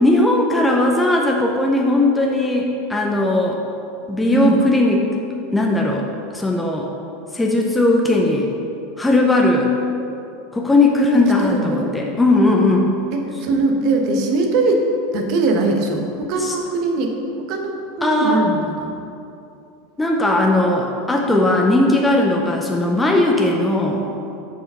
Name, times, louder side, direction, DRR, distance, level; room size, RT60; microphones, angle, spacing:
voice 1, 0.0-3.6 4.1-5.1 5.5-6.1 6.3-6.9 7.3-8.5 9.0-9.7 10.5-12.9 16.4-16.5 18.0-18.5 20.0-24.0, left 2 dB, 10° left, 0 dB, 0.8 m, -17 dB
voice 2, 11.4-11.9 13.1-14.9 15.1-18.9 21.3-21.5 23.6-23.8, right 3 dB, 55° right, 3 dB, 1.1 m, -21 dB
7.1 x 4.8 x 5.5 m, 2.7 s
hypercardioid pair, 100°, 0 cm